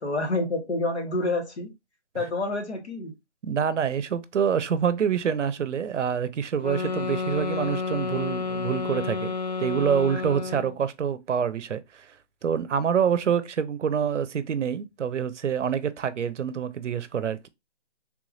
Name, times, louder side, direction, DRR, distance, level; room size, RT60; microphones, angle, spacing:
voice 1, 0.0-1.7 2.1-3.1, left 2 dB, 65° left, 1.7 m, -28 dB
voice 2, 3.4-9.3 9.6-12.1 12.4-17.5, right 7 dB, 80° right, 0.6 m, -26 dB
sound 1, 6.6-10.8, left 4 dB, 35° left, 0.7 m, -30 dB
3.4 x 3.1 x 2.5 m
hypercardioid pair, 165°, 35 cm